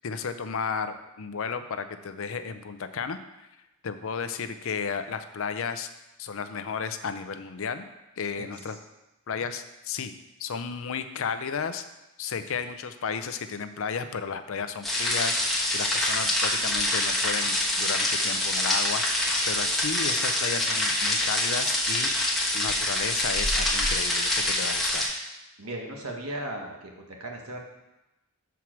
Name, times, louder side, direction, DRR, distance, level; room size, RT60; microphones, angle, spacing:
voice 1, 0.0-3.2 3.8-5.9 6.2-7.8 8.2-8.8 9.3-10.1 10.4-11.8 12.2-25.1, left 6 dB, 65° left, 10 dB, 0.5 m, -33 dB
sound 1, 14.8-25.1, left 1 dB, ahead, 1.2 m, -26 dB
voice 2, 25.6-27.6, right 1 dB, 80° right, 1 dB, 1.5 m, -37 dB
7.1 x 4.7 x 6.0 m, 0.98 s
head